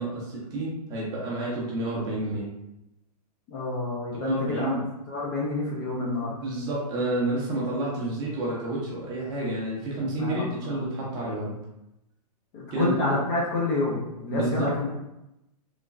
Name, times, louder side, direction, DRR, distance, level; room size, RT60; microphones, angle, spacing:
voice 1, 0.0-2.5 4.1-4.8 6.2-11.5 12.7-13.2 14.3-14.8, right 1 dB, 20° right, -5 dB, 0.6 m, -29 dB
voice 2, 3.5-4.8 5.1-6.3 10.2-11.2 12.5-14.9, left 2 dB, 25° left, -4 dB, 0.4 m, -29 dB
3.1 x 2.3 x 2.3 m, 0.88 s
hypercardioid pair, 155°, 20 cm